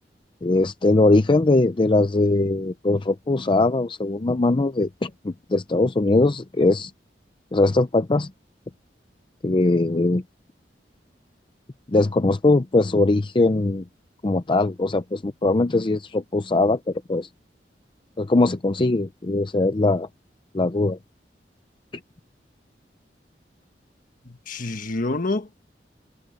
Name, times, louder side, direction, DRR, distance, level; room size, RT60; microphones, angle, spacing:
voice 1, 0.4-6.9 7.5-8.3 9.4-10.2 11.9-13.8 14.2-17.3 18.2-20.1 20.5-21.0, left 2 dB, 30° left, 0.6 m, -21 dB
voice 2, 24.3-25.6, left 2 dB, 50° left, 1.4 m, -28 dB
head